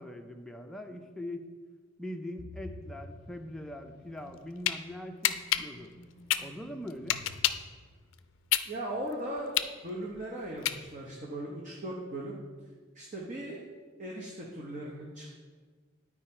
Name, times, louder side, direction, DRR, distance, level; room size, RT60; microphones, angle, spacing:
voice 1, 0.0-1.4 2.0-5.9 6.4-7.2, left 1 dB, ahead, 3 dB, 0.5 m, -42 dB
sound 1, 2.4-8.3, left 1 dB, 60° right, 2.3 m, -50 dB
sound 2, 4.2-4.8 5.2-7.7 8.1-11.2, left 12 dB, 90° left, 0.4 m, -29 dB
voice 2, 8.6-9.5 9.8-12.4 12.9-13.6 14.0-15.4, right 1 dB, 40° right, -2 dB, 0.9 m, -38 dB
10.0 x 4.8 x 4.3 m, 1.5 s
head